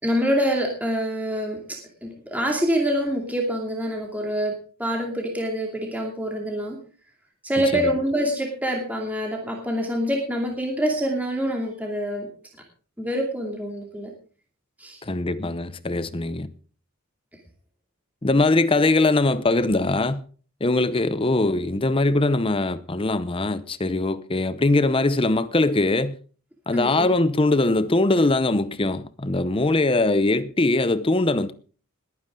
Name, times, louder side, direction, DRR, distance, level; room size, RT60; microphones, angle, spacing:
voice 1, 0.0-6.8 7.4-12.3 13.0-14.1 14.8-15.0 26.7-27.1, equal, 5° right, 2.6 m, -26 dB
voice 2, 15.0-16.5 18.2-20.2 20.6-26.2 26.7-31.5, left 2 dB, 25° left, 0.7 m, -21 dB
20.5 x 9.4 x 3.8 m
head